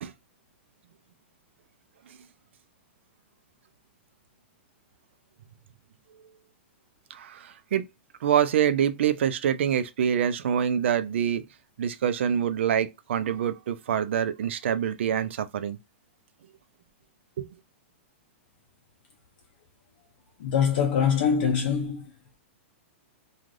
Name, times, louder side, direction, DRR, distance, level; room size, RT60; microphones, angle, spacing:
voice 1, 7.1-7.9 8.2-11.4 11.8-15.8 17.4-17.5, right 9 dB, 70° right, 0.5 m, -26 dB
voice 2, 20.4-22.0, left 7 dB, 50° left, 0.5 m, -23 dB
2.5 x 2.3 x 3.2 m
supercardioid pair, 160°, 7 cm